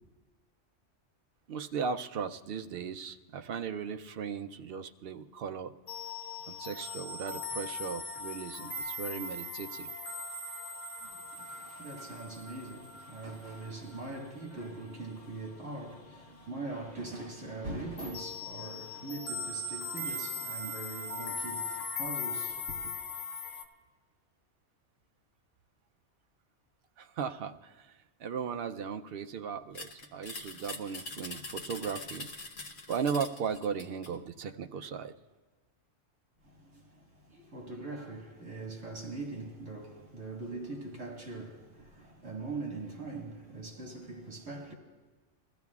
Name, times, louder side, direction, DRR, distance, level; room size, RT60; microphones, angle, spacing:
voice 1, 1.5-5.7 6.5-9.9 27.0-27.9 28.2-32.3 32.9-35.1, right 6 dB, 60° right, 0.7 m, -37 dB
sound 1, 5.9-16.3 16.5-16.9 17.2-23.6, left 3 dB, 75° left, 1.4 m, -40 dB
voice 2, 11.0-22.9 36.4-44.7, right 2 dB, 80° right, 2.1 m, -42 dB
sound 2, 29.7-34.2, left 3 dB, 45° left, 0.9 m, -43 dB
21.5 x 14.0 x 2.4 m
omnidirectional pair, 1.3 m